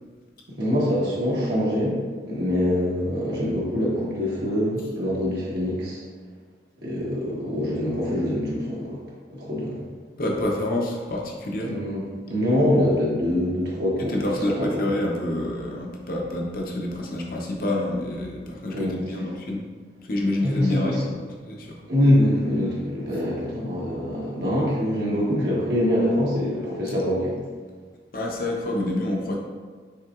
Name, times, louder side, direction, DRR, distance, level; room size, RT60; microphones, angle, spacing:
voice 1, 0.6-2.0 2.3-6.0 6.8-9.0 9.3-9.8 11.6-14.1 14.6-14.8 18.7-18.9 20.4-21.0 21.9-27.3, left 1 dB, 70° right, -6 dB, 1.2 m, -24 dB
voice 2, 10.2-11.7 14.0-19.6 20.0-21.8 28.1-29.4, left 1 dB, 55° left, 0 dB, 0.7 m, -28 dB
5.7 x 3.8 x 2.4 m, 1.5 s
head